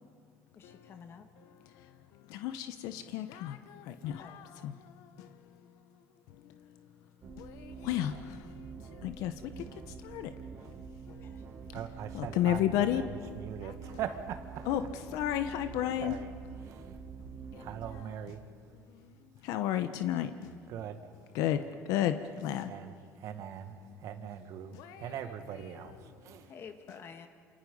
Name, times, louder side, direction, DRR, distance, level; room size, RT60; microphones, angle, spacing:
voice 1, 0.5-1.3 4.2-4.7 11.1-11.4 26.4-27.3, left 6 dB, 40° left, 1.9 m, -50 dB
voice 2, 2.4-3.6 4.0-4.2 4.6-4.7 7.8-8.1 9.0-9.3 10.1-10.3 12.1-13.0 14.7-14.8 15.1-16.1 19.5-20.3 21.3-21.6 21.9-22.7, left 12 dB, 75° left, 1.0 m, -30 dB
sound 1, 7.2-18.0, right 5 dB, 40° right, 2.4 m, -46 dB
voice 3, 11.7-14.9 16.0-16.3 16.6-16.9 17.6-18.4 20.7-21.0 22.7-26.5, right 9 dB, 65° right, 1.8 m, -41 dB
28.0 x 28.0 x 5.5 m
cardioid pair, 125°, 6 cm